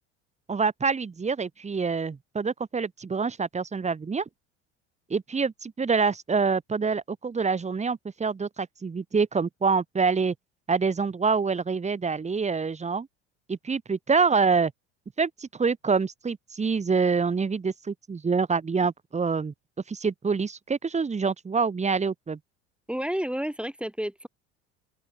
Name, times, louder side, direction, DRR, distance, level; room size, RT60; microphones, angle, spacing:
voice 1, 0.5-4.2 5.1-10.3 10.7-13.1 13.5-14.7 15.2-19.5 19.9-22.4, right 5 dB, 20° right, 1.4 m, -26 dB
voice 2, 22.9-24.3, equal, 5° right, 3.1 m, -30 dB
open air
hypercardioid pair, 75°, 35 cm